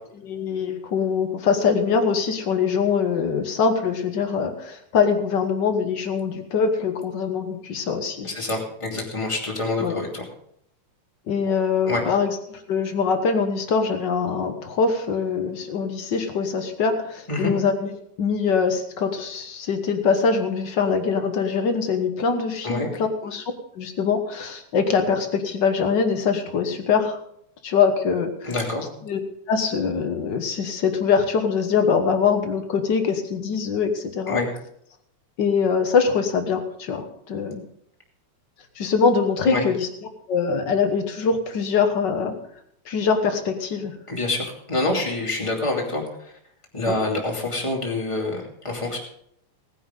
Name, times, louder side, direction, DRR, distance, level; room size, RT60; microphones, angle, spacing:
voice 1, 0.2-8.3 9.8-10.0 11.3-17.9 18.2-27.2 27.6-28.5 29.0-29.2 29.5-34.4 35.4-37.6 38.8-39.9 40.3-42.4 42.9-44.0 46.9-47.0, left 5 dB, 50° left, 6 dB, 1.4 m, -23 dB
voice 2, 8.2-10.2 11.8-12.0 17.3-17.5 22.6-22.9 28.4-28.9 34.3-34.5 39.4-39.6 44.1-46.3 46.7-49.0, left 2 dB, 10° left, -1 dB, 2.2 m, -26 dB
18.5 x 10.0 x 3.8 m, 0.71 s
omnidirectional pair, 3.4 m